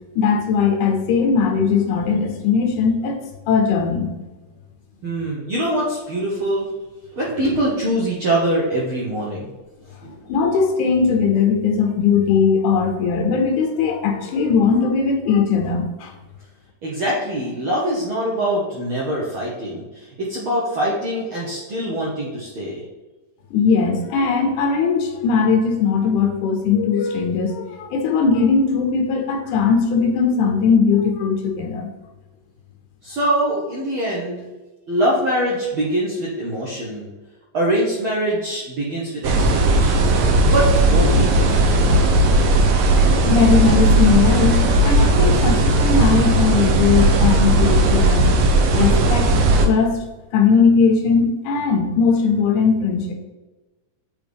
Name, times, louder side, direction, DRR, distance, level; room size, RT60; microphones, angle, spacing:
voice 1, 0.2-3.2 3.5-4.1 10.3-16.1 23.5-31.9 42.9-48.3 48.7-49.3 49.6-50.0 50.3-53.1, left 5 dB, 75° left, 2 dB, 2.3 m, -19 dB
voice 2, 5.0-6.7 7.1-9.5 9.9-10.2 16.8-22.8 33.0-34.4 34.9-37.1 37.5-40.1 40.5-41.9, right 1 dB, 65° right, -5 dB, 1.3 m, -23 dB
sound 1, 39.2-49.7, right 2 dB, 85° right, 2.4 m, -16 dB
7.8 x 3.5 x 3.4 m, 1.2 s
omnidirectional pair, 3.7 m